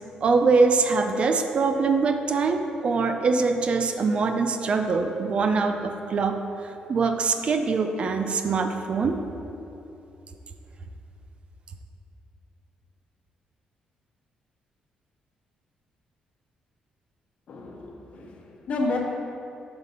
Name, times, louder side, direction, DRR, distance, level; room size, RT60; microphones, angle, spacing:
voice 1, 0.2-9.2, right 4 dB, 45° right, 6 dB, 0.4 m, -23 dB
voice 2, 17.5-19.0, left 3 dB, 55° left, 0 dB, 1.0 m, -31 dB
6.8 x 4.0 x 5.5 m, 2.8 s
cardioid pair, 120°, 3 cm